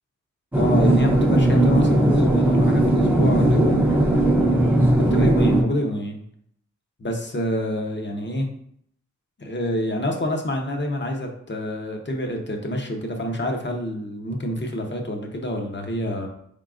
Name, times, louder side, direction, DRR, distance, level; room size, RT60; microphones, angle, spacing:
voice 1, 0.5-3.9 4.9-6.2 7.0-8.5 9.4-16.3, left 1 dB, 35° left, 2 dB, 0.8 m, -27 dB
sound 1, 0.5-5.6, right 1 dB, 5° right, 0.7 m, -18 dB
3.9 x 3.7 x 2.5 m, 0.67 s
cardioid pair, 55°, 30 cm